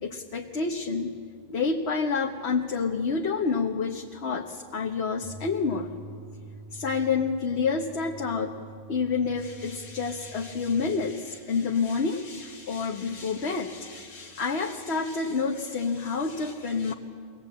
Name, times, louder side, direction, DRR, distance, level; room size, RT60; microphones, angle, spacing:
voice 1, 0.0-1.1 1.5-5.9 6.7-8.6 8.9-16.9, left 5 dB, 85° left, 2 dB, 1.3 m, -28 dB
sound 1, 5.2-11.2, right 1 dB, 25° right, 0.5 m, -46 dB
23.5 x 18.5 x 8.6 m, 2.1 s
omnidirectional pair, 1.1 m